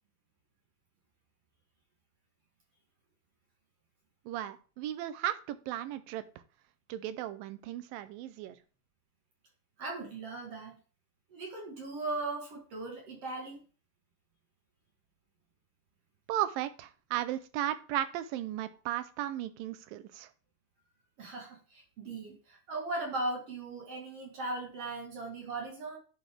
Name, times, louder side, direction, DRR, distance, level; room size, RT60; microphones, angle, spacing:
voice 1, 4.3-6.2 6.9-8.6 16.3-20.3, right 12 dB, 80° right, 12 dB, 2.3 m, -35 dB
voice 2, 9.8-10.7 11.3-13.6 21.2-26.0, right 2 dB, 55° right, 0 dB, 1.9 m, -38 dB
11.0 x 3.9 x 3.4 m, 0.36 s
omnidirectional pair, 4.2 m